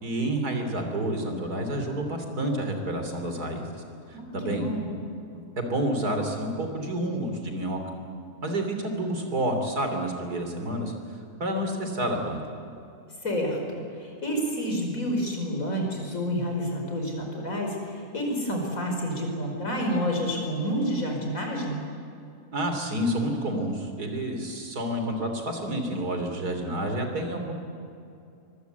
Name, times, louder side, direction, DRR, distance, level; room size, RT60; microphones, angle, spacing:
voice 1, 0.0-3.7 4.1-4.7 5.3-7.8 8.4-10.9 11.4-12.4 22.5-27.5, right 1 dB, 85° right, 5 dB, 3.9 m, -29 dB
voice 2, 4.1-4.9 13.2-21.8, equal, 60° left, 2 dB, 5.4 m, -29 dB
24.0 x 23.0 x 8.2 m, 2.6 s
omnidirectional pair, 1.6 m